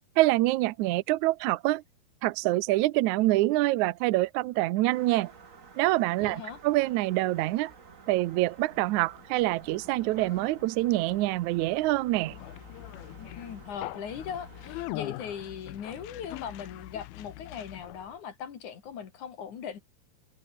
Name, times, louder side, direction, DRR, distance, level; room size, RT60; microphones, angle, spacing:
voice 1, 0.2-1.8 2.2-5.3 5.8-7.7 8.1-12.3, right 18 dB, 90° right, 1.7 m, -26 dB
sound 1, 4.8-14.9, right 5 dB, 40° right, 1.1 m, -52 dB
voice 2, 6.2-6.6 13.2-19.8, left 7 dB, 55° left, 3.5 m, -39 dB
Conversation, 8.7-18.2, left 18 dB, 85° left, 2.6 m, -43 dB
omnidirectional pair, 4.4 m